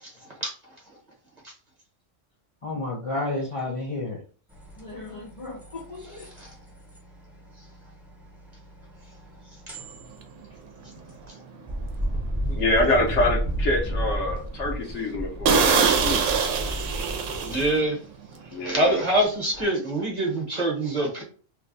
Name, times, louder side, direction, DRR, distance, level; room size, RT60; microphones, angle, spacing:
voice 1, 2.6-4.2 4.8-6.3 11.7-11.9 12.8-13.0, left 2 dB, 45° left, -2 dB, 0.4 m, -32 dB
sound 1, 4.5-11.3 11.7-17.7 18.7-19.1 19.5-19.6, equal, ahead, 0.7 m, -33 dB
sound 2, 10.2-10.4 10.9-11.1 11.6-11.7 12.1-12.2 12.7-13.2 13.6-13.7 14.1-14.3 14.5-14.6 15.0-15.1 15.4-18.0 18.2-18.5, right 5 dB, 80° right, 1.0 m, -23 dB
voice 2, 12.5-16.2 18.5-19.0, left 1 dB, 70° left, 1 dB, 1.2 m, -25 dB
voice 3, 17.4-18.0 18.6-21.2, right 1 dB, 35° right, -1 dB, 1.0 m, -25 dB
3.0 x 2.2 x 3.8 m, 0.40 s
omnidirectional pair, 1.3 m